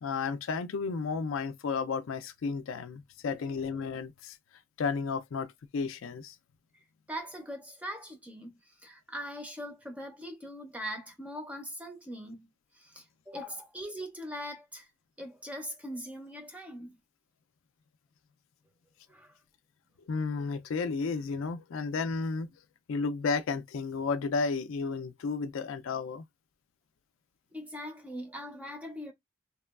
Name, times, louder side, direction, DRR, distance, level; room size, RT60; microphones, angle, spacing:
voice 1, 0.0-4.4 4.8-6.4 20.1-22.5 22.9-26.2, left 4 dB, 60° left, 0.4 m, -32 dB
voice 2, 3.2-3.6 7.1-12.5 12.7-14.9 15.2-17.0 19.1-19.4 27.5-29.1, equal, 5° right, 0.4 m, -41 dB
2.9 x 2.2 x 2.3 m
head